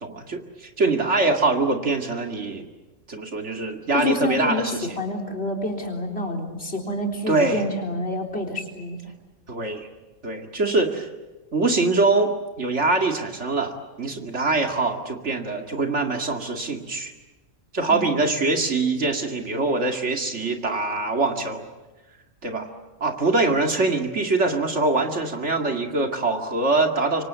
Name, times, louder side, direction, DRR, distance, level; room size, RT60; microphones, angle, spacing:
voice 1, 0.0-2.7 3.1-4.9 7.3-7.6 9.5-9.9 10.2-11.1 11.5-17.1 17.7-21.7 22.4-22.7 23.0-27.2, right 3 dB, 60° right, 4 dB, 2.5 m, -23 dB
voice 2, 3.9-9.0 17.9-18.1, left 1 dB, 55° left, 2 dB, 4.2 m, -28 dB
27.0 x 24.0 x 8.2 m, 1.1 s
omnidirectional pair, 1.3 m